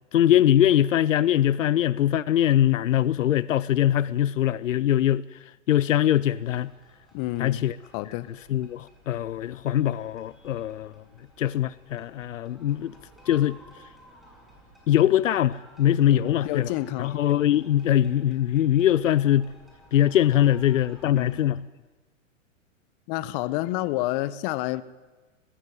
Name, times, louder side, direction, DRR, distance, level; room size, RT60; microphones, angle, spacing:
voice 1, 0.1-5.2 5.7-6.7 7.4-7.7 8.5-10.9 11.4-12.9 13.3-13.6 14.9-16.7 17.0-19.5 19.9-21.6, left 11 dB, 80° left, 0.7 m, -22 dB
sound 1, 6.0-21.4, equal, ahead, 6.8 m, -54 dB
voice 2, 7.1-7.7 7.9-8.3 16.1-17.1 21.0-21.3 23.1-24.8, left 17 dB, 45° left, 1.1 m, -29 dB
20.5 x 15.0 x 9.3 m
hypercardioid pair, 115°, 38 cm